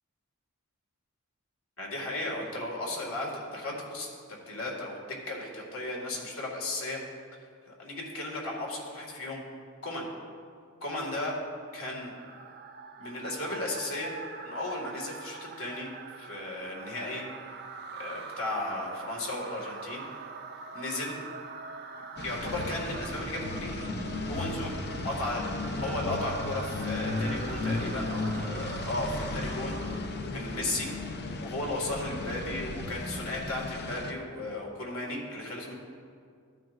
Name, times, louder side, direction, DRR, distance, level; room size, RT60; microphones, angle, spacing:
voice 1, 1.8-5.0 5.3-7.0 7.3-9.4 9.8-10.0 10.8-11.4 11.7-12.1 13.0-14.1 14.4-17.3 18.0-20.0 20.7-21.1 22.2-23.8 24.3-25.5 25.8-29.8 30.3-30.9 31.4-35.7, left 2 dB, 65° left, -1 dB, 2.0 m, -35 dB
sound 1, 11.4-30.3, right 5 dB, 45° right, 0.5 m, -44 dB
sound 2, 22.2-34.1, left 2 dB, 50° left, 0.7 m, -35 dB
14.0 x 9.0 x 2.5 m, 2.2 s
head